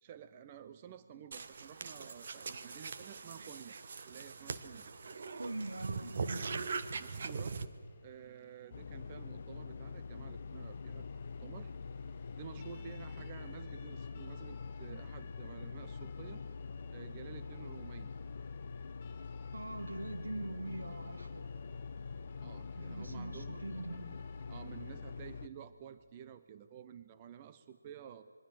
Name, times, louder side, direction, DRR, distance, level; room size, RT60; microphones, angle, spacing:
voice 1, 0.0-4.9 7.0-7.6 8.0-11.7 12.4-16.4 16.9-18.1 22.4-23.6 24.5-28.3, right 9 dB, 25° right, 10 dB, 0.7 m, -51 dB
sound 1, 1.3-7.7, right 4 dB, 45° right, 1.3 m, -41 dB
voice 2, 5.4-6.7 19.5-21.6 22.7-24.1, right 2 dB, 75° right, 5 dB, 2.7 m, -43 dB
Siren, 7.5-25.1, left 6 dB, 25° left, 4.4 m, -63 dB
sound 2, 8.7-25.5, left 5 dB, 45° left, 0.7 m, -44 dB
26.5 x 22.5 x 7.4 m, 2.2 s
figure-of-eight pair, 155°, 0 cm